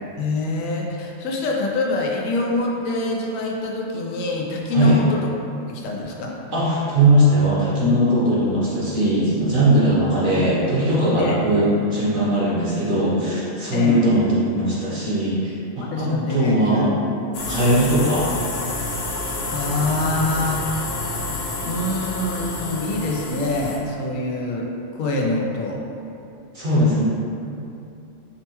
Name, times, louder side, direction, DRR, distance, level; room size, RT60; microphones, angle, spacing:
voice 1, 0.2-5.2 5.7-6.4 11.2-11.4 13.7-14.0 15.9-16.9 17.5-17.9 19.5-20.6 21.6-24.7 24.9-25.8, left 2 dB, 85° left, -1 dB, 1.0 m, -25 dB
voice 2, 6.5-16.9 17.5-18.3 26.5-27.0, right 1 dB, 45° right, -8 dB, 0.8 m, -19 dB
sound 1, 17.3-23.8, left 2 dB, 60° left, 0.7 m, -29 dB
5.3 x 2.1 x 2.9 m, 2.7 s
omnidirectional pair, 1.3 m